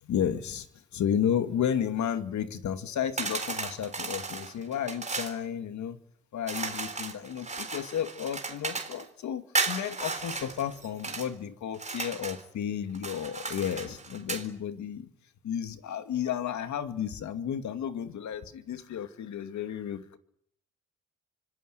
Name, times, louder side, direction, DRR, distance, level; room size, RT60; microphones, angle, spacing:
voice 1, 0.0-6.0 6.3-15.1 15.4-20.2, left 9 dB, 70° left, 9 dB, 2.4 m, -32 dB
sound 1, 3.2-5.4 6.5-9.0 9.5-11.3 11.7-12.4 12.9-14.5, right 4 dB, 25° right, 3.9 m, -34 dB
25.5 x 21.5 x 9.4 m, 0.70 s
cardioid pair, 90°, 30 cm